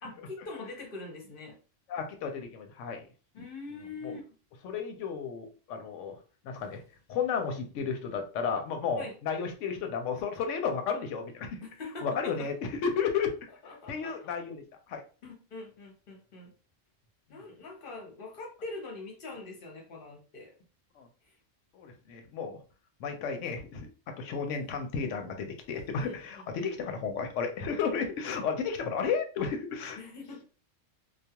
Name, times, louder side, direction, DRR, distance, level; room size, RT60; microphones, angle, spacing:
voice 1, 0.0-1.6 3.3-4.2 9.0-9.1 11.6-12.5 13.6-14.3 15.2-16.5 17.3-20.5 25.9-26.2 26.6-26.7 30.0-30.4, left 3 dB, 50° left, 1 dB, 0.9 m, -43 dB
voice 2, 1.9-3.0 4.6-6.2 6.4-6.8 7.1-11.6 12.0-13.3 13.9-14.6 14.9-15.0 21.0-21.1 21.7-22.6 23.0-23.9 24.2-30.0, left 6 dB, 75° left, 5 dB, 0.9 m, -33 dB
2.3 x 2.3 x 2.8 m, 0.36 s
omnidirectional pair, 1.3 m